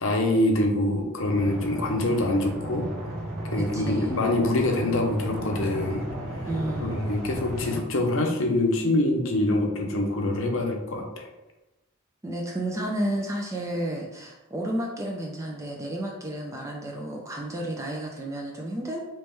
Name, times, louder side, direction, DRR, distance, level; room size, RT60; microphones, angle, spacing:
voice 1, 0.0-2.9 3.5-6.0 6.8-11.3, left 1 dB, 60° left, 2 dB, 0.6 m, -25 dB
sound 1, 1.3-7.8, equal, 85° right, 1.0 m, -34 dB
voice 2, 3.6-4.2 6.4-7.0 12.2-19.0, right 1 dB, 15° right, 0 dB, 0.3 m, -32 dB
3.3 x 3.0 x 3.0 m, 1.0 s
head